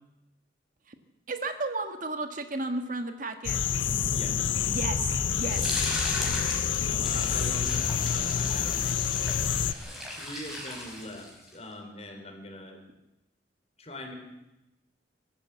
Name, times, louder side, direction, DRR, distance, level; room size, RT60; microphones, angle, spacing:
voice 1, 1.3-3.6 4.7-5.9, right 3 dB, 45° right, 8 dB, 1.5 m, -34 dB
sound 1, 3.4-9.7, left 7 dB, 85° left, 0.7 m, -28 dB
voice 2, 4.1-4.6 6.8-8.8 10.2-12.8 13.8-14.1, left 1 dB, 35° left, 4 dB, 4.0 m, -42 dB
sound 2, 5.5-11.5, equal, ahead, 5.0 m, -37 dB
22.5 x 14.0 x 8.2 m, 0.95 s
head